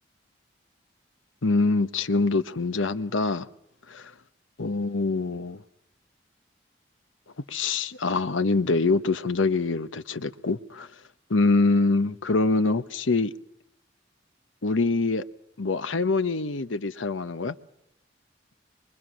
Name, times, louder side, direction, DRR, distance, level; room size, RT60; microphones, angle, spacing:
voice 1, 1.4-3.5 3.9-4.1 4.6-5.6 7.5-10.9 11.3-13.3 14.6-15.2 15.6-17.5, left 3 dB, 90° left, 1.0 m, -24 dB
24.5 x 24.0 x 6.2 m
head